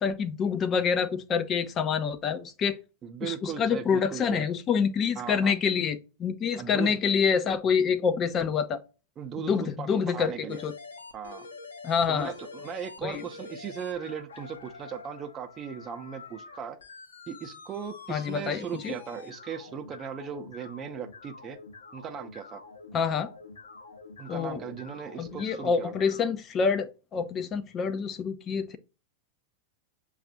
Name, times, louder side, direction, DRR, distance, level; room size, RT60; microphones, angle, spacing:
voice 1, 0.0-2.8 3.2-8.8 9.4-10.7 11.8-12.3 13.0-13.2 18.1-18.9 22.9-23.3 24.3-24.6 25.2-28.8, left 6 dB, 30° left, 0.3 m, -27 dB
voice 2, 3.0-4.4 5.2-5.5 6.6-7.0 9.2-10.6 11.1-11.5 12.1-16.8 17.3-21.6 21.9-22.6 24.2-25.9, right 7 dB, 30° right, 0.5 m, -38 dB
sound 1, 10.5-26.3, left 4 dB, 70° left, 0.6 m, -47 dB
6.5 x 2.4 x 2.7 m
figure-of-eight pair, 90°, 0 cm